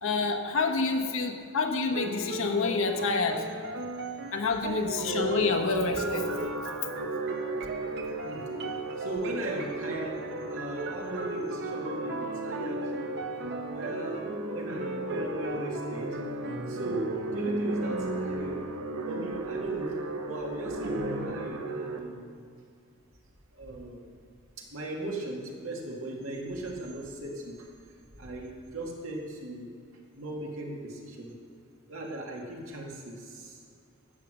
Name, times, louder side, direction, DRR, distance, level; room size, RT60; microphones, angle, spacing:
voice 1, 0.0-3.5 4.3-6.3, left 4 dB, 65° left, 3 dB, 1.1 m, -28 dB
sound 1, 1.9-19.0 20.8-21.5, right 1 dB, 50° right, 0.9 m, -37 dB
sound 2, 4.8-22.0, right 2 dB, 90° right, 1.0 m, -36 dB
voice 2, 8.9-10.2 10.5-12.8 13.3-16.2 16.7-18.6 19.1-19.9 20.3-22.4 23.5-24.1 24.6-27.8 28.1-29.7 30.1-31.3 31.9-33.6, right 1 dB, 70° right, -1 dB, 2.2 m, -38 dB
12.0 x 8.5 x 6.4 m, 2.2 s
head